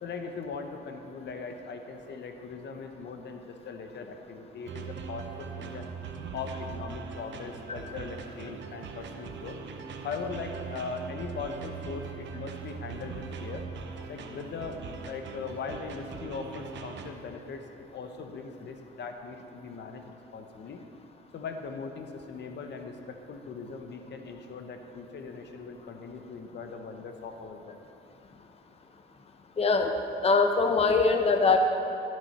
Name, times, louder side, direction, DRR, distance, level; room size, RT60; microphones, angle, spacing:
voice 1, 0.0-5.9 6.3-9.6 10.0-13.7 14.1-14.8 15.0-20.8 21.3-27.8, left 4 dB, 60° left, 5 dB, 0.9 m, -40 dB
sound 1, 4.7-17.1, right 5 dB, 65° right, 0.9 m, -41 dB
voice 2, 29.6-29.9 30.2-31.6, left 4 dB, 30° left, 5 dB, 0.8 m, -22 dB
17.0 x 6.4 x 4.2 m, 2.9 s
cardioid pair, 90°, 20 cm